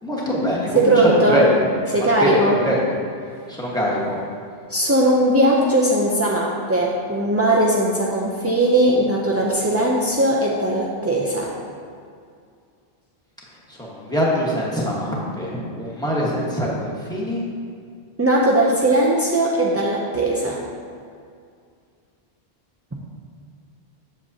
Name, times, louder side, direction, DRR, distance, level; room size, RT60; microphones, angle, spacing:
voice 1, 0.0-0.9 1.3-1.7 1.9-2.9 3.5-4.2 13.7-17.4, equal, 5° left, -6 dB, 1.2 m, -23 dB
voice 2, 0.7-1.4 1.9-2.6 4.7-11.5 18.2-20.6, right 1 dB, 25° right, -5 dB, 0.3 m, -19 dB
7.8 x 7.3 x 2.8 m, 2.2 s
omnidirectional pair, 1.1 m